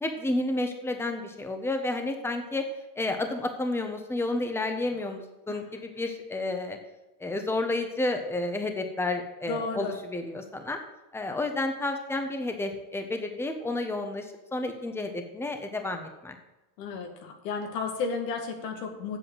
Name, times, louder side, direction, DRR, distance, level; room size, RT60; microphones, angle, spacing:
voice 1, 0.0-2.6 2.9-6.8 7.2-10.8 11.1-16.4, left 2 dB, 5° left, 5 dB, 1.1 m, -31 dB
voice 2, 9.5-9.9 16.8-19.2, left 4 dB, 85° left, 4 dB, 2.1 m, -33 dB
8.2 x 7.0 x 7.9 m, 0.98 s
supercardioid pair, 120°, 48 cm